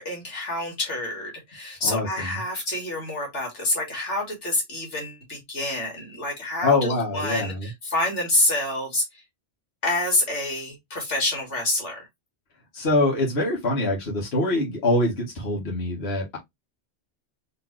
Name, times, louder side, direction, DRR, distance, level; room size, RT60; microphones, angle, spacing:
voice 1, 0.0-9.2 9.8-12.1, left 1 dB, 85° left, 2.2 m, -27 dB
voice 2, 1.8-2.4 6.6-7.7 12.7-16.4, left 2 dB, 65° left, 1.6 m, -24 dB
4.0 x 3.3 x 3.1 m
omnidirectional pair, 1.2 m